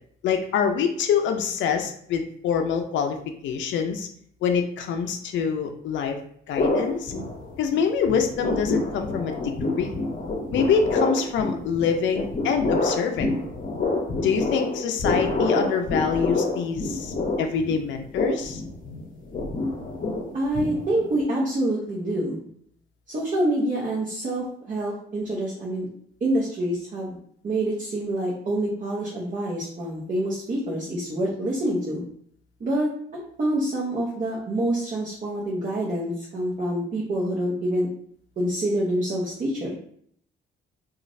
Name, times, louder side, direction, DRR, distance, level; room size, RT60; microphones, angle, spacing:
voice 1, 0.2-3.2 3.4-4.1 4.4-6.2 6.5-7.1 7.6-9.9 10.5-13.3 14.2-18.6, left 6 dB, 70° left, 5 dB, 0.4 m, -25 dB
sound 1, 6.5-7.8 8.1-21.2, left 2 dB, 45° left, 0.8 m, -27 dB
voice 2, 20.3-22.4 23.1-25.9 26.2-27.2 27.4-32.0 32.6-37.9 38.4-39.8, right 1 dB, 40° right, -5 dB, 0.8 m, -26 dB
3.0 x 2.4 x 2.6 m, 0.64 s
cardioid pair, 90°, 20 cm